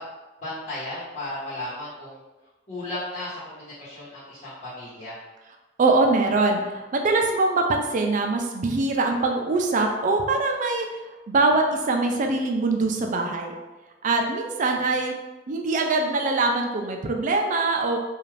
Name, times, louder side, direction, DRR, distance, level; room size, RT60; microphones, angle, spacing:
voice 1, 0.4-2.2 2.7-5.2, left 1 dB, 40° left, -13 dB, 1.1 m, -35 dB
voice 2, 5.8-10.9 11.3-13.6 14.0-15.1 15.5-18.0, right 3 dB, 45° right, 3 dB, 0.4 m, -23 dB
2.5 x 2.4 x 3.2 m, 1.1 s
head